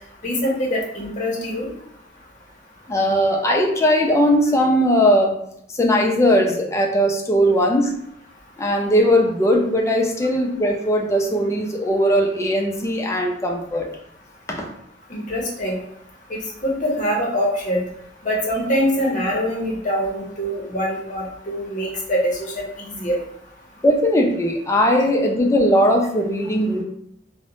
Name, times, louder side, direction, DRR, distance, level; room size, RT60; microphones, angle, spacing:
voice 1, 0.2-1.7 15.1-15.8 16.3-17.8 18.2-23.2, equal, 40° left, -3 dB, 0.7 m, -24 dB
voice 2, 2.9-5.4 5.7-8.0 8.6-13.9 14.5-14.7 23.8-26.8, equal, 15° left, 1 dB, 0.4 m, -19 dB
2.5 x 2.0 x 2.9 m, 0.75 s
head